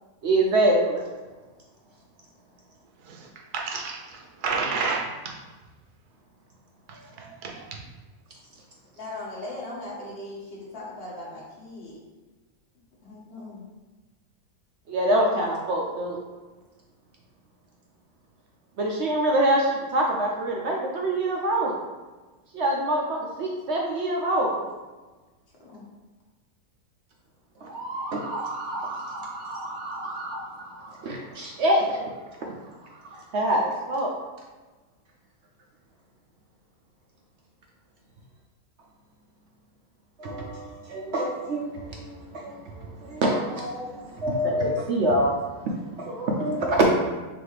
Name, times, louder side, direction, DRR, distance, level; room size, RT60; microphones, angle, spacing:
voice 1, 0.2-1.0 14.9-16.2 18.8-21.8 22.5-24.6 27.6-32.1 32.4-32.5 33.1-34.1 40.2-46.9, right 1 dB, 65° right, -1 dB, 0.7 m, -26 dB
voice 2, 3.0-5.4 6.9-7.8, right 4 dB, 85° right, 0 dB, 1.3 m, -31 dB
voice 3, 8.9-12.0 13.0-13.6 25.6-25.8 46.4-46.5, left 2 dB, 45° left, -5 dB, 1.3 m, -39 dB
4.0 x 3.3 x 3.3 m, 1.2 s
omnidirectional pair, 1.6 m